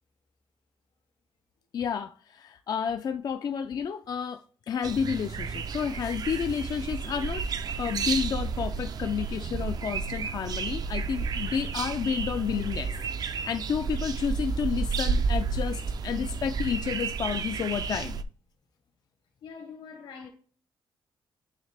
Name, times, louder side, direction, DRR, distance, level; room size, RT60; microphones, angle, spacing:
voice 1, 1.7-18.2, left 7 dB, 45° left, 0.3 m, -31 dB
sound 1, 4.8-18.2, right 5 dB, 45° right, 0.4 m, -31 dB
voice 2, 19.4-20.3, left 6 dB, 85° left, 1.9 m, -44 dB
9.1 x 3.3 x 3.4 m
cardioid pair, 130°, 9 cm